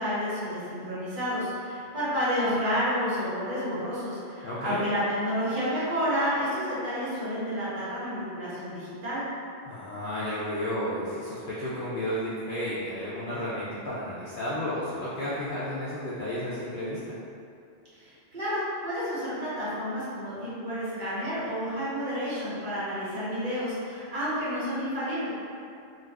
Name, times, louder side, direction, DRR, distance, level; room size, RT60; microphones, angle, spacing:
voice 1, 0.0-9.2 18.0-25.3, equal, 45° right, -10 dB, 0.9 m, -30 dB
voice 2, 4.4-4.8 9.7-17.1, left 1 dB, 65° left, -10 dB, 0.5 m, -32 dB
2.5 x 2.3 x 3.3 m, 2.5 s
omnidirectional pair, 1.3 m